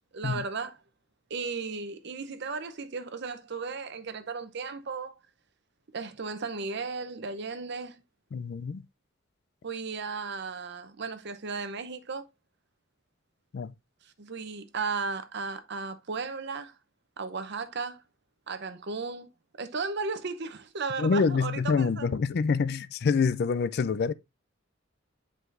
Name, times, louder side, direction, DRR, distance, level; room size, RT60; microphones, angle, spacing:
voice 1, 0.1-0.8 1.3-5.2 5.9-8.0 9.6-12.2 14.0-16.7 17.2-18.0 18.5-19.3 19.6-22.1, right 4 dB, 60° right, 0.8 m, -35 dB
voice 2, 8.3-8.8 13.5-13.7 21.0-24.1, left 5 dB, 55° left, 0.4 m, -26 dB
7.8 x 4.9 x 2.5 m
head